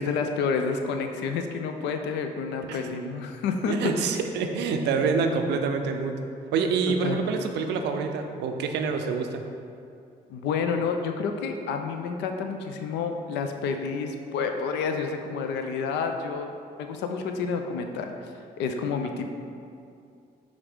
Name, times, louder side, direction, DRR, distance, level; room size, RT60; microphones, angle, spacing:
voice 1, 0.0-3.7 6.9-7.2 10.3-16.5 16.8-18.1 18.6-19.3, left 5 dB, 80° left, 5 dB, 0.4 m, -29 dB
voice 2, 3.7-6.1 6.5-9.4, right 5 dB, 80° right, 5 dB, 0.4 m, -26 dB
5.7 x 2.6 x 3.5 m, 2.5 s
supercardioid pair, 60°, 18 cm